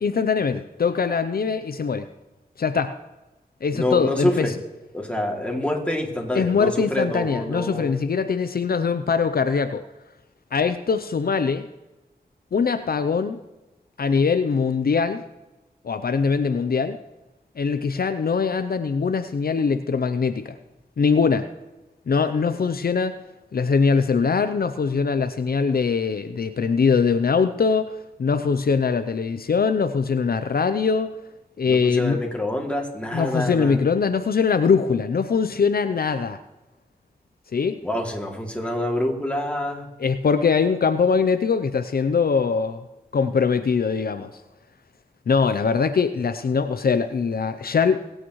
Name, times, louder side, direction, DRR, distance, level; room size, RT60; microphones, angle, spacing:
voice 1, 0.0-2.1 2.6-2.9 3.6-4.5 6.3-9.8 10.5-11.6 12.5-13.4 14.0-15.2 15.8-17.0 17.6-20.5 21.0-21.5 22.1-23.2 23.5-31.1 31.6-32.2 33.1-36.4 37.5-37.8 40.0-42.8 43.1-44.3 45.3-48.0, left 5 dB, 70° left, 9 dB, 0.6 m, -22 dB
voice 2, 3.7-4.5 4.9-7.9 31.7-33.8 37.8-39.9, left 1 dB, 5° left, 0 dB, 2.6 m, -26 dB
22.5 x 8.8 x 3.1 m, 1.0 s
wide cardioid pair, 60°, 16 cm